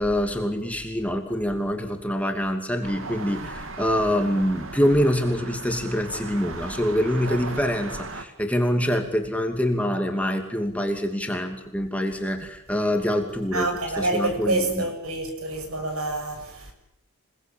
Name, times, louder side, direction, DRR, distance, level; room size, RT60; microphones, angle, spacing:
voice 1, 0.0-13.7 14.0-14.9, equal, 5° left, 2.7 m, -25 dB
sound 1, 2.8-8.2, right 2 dB, 60° right, 2.6 m, -37 dB
voice 2, 13.5-16.7, right 2 dB, 85° right, 7.5 m, -27 dB
27.5 x 20.0 x 9.0 m
head